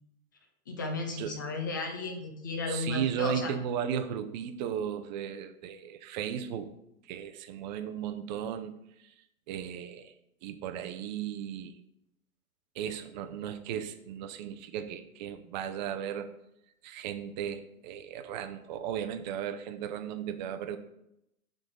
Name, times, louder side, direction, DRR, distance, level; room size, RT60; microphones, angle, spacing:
voice 1, 0.7-3.5, left 3 dB, 15° left, 3 dB, 0.3 m, -34 dB
voice 2, 2.7-10.1 10.4-11.8 12.7-16.3 16.8-20.8, right 8 dB, 30° right, 7 dB, 0.6 m, -36 dB
11.5 x 3.9 x 3.7 m, 0.81 s
hypercardioid pair, 135°, 42 cm